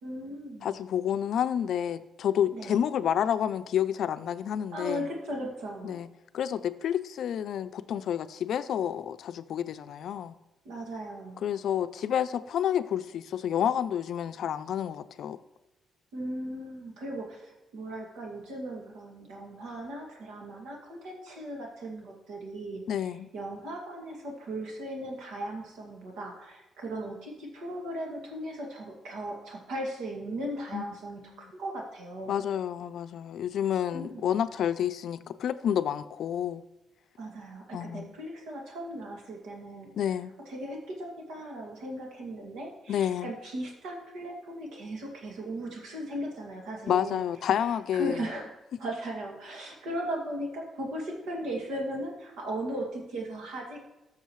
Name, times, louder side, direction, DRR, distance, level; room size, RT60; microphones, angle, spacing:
voice 1, 0.0-0.7 2.5-2.8 4.7-6.0 10.6-11.4 16.1-32.4 33.9-34.3 37.2-39.9 40.5-47.2 47.9-48.5 48.8-53.8, right 1 dB, 90° right, 2.2 m, -37 dB
voice 2, 0.6-5.1 5.8-6.1 6.3-10.3 11.4-15.4 22.9-23.3 30.7-30.9 31.3-31.5 32.3-36.6 37.7-38.1 39.9-40.3 42.9-43.3 46.9-48.3, left 9 dB, 70° left, 0.4 m, -29 dB
13.5 x 6.6 x 3.2 m
cardioid pair, 90°, 0 cm